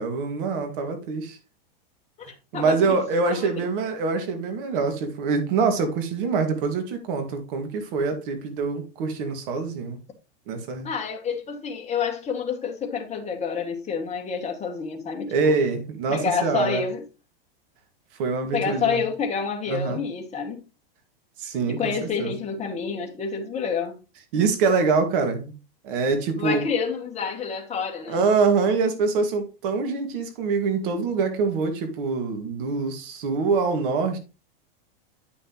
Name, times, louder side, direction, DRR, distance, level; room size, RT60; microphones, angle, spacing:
voice 1, 0.0-1.4 2.5-10.0 10.5-10.9 15.3-16.8 18.2-19.0 19.7-20.0 21.4-22.4 24.3-25.5 25.8-26.6 28.1-34.2, right 4 dB, 60° right, 2.2 m, -25 dB
voice 2, 2.5-3.0 3.3-3.4 10.8-15.5 16.1-17.0 18.5-20.6 21.7-24.0 26.4-28.2, left 6 dB, 20° left, 2.0 m, -28 dB
9.4 x 5.9 x 3.1 m
hypercardioid pair, 125°, 30 cm